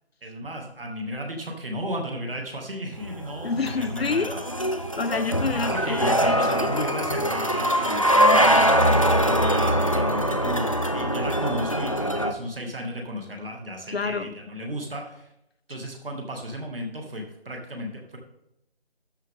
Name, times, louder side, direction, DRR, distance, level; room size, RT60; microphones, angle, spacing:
voice 1, 0.2-4.4 5.5-15.3 15.7-18.2, equal, 60° right, 2 dB, 2.5 m, -34 dB
sound 1, 3.0-12.3, equal, 35° left, 0.5 m, -22 dB
voice 2, 3.4-6.9 8.3-8.5 13.9-14.3, left 4 dB, 70° left, 13 dB, 0.9 m, -29 dB
12.5 x 6.7 x 3.8 m, 0.81 s
figure-of-eight pair, 175°, 31 cm